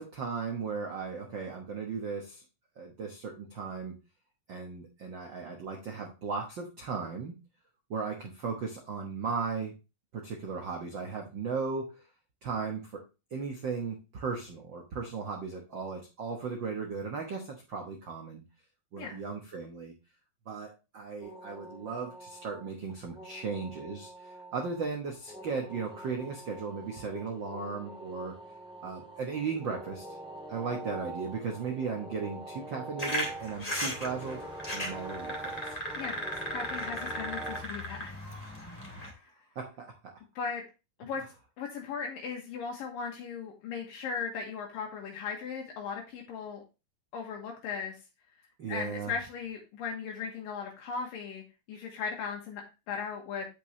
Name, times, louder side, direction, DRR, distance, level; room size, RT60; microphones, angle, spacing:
voice 1, 0.0-2.4 2.8-4.0 4.5-7.4 7.9-9.7 10.1-12.0 12.4-13.0 13.3-18.4 18.9-19.9 20.5-28.4 28.8-30.2 30.5-35.8 39.5-40.1 48.6-49.1, right 5 dB, 75° right, 1 dB, 1.0 m, -36 dB
sound 1, 21.2-37.6, right 1 dB, 5° right, 0.8 m, -44 dB
sound 2, 33.0-39.1, equal, 15° left, 1.3 m, -37 dB
voice 2, 36.0-38.2 40.4-40.6 41.0-41.2 41.6-46.6 47.1-48.0 48.7-51.4 51.7-53.5, left 6 dB, 80° left, 0 dB, 2.9 m, -37 dB
8.5 x 6.9 x 3.1 m, 0.28 s
omnidirectional pair, 4.0 m